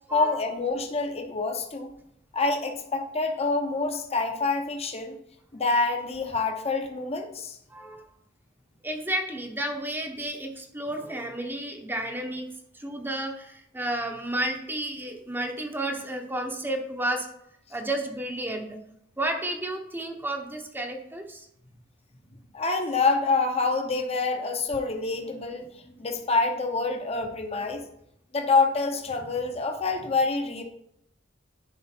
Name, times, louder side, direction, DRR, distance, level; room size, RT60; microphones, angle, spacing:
voice 1, 0.1-1.9 2.3-5.2 5.5-7.6 22.5-25.7 26.0-27.8 28.3-30.6, left 3 dB, 35° left, 4 dB, 1.0 m, -26 dB
voice 2, 7.7-8.0 8.8-12.5 12.7-17.3 17.7-18.8 19.2-21.5, right 1 dB, 10° right, 3 dB, 0.9 m, -32 dB
10.5 x 5.0 x 4.4 m, 0.75 s
head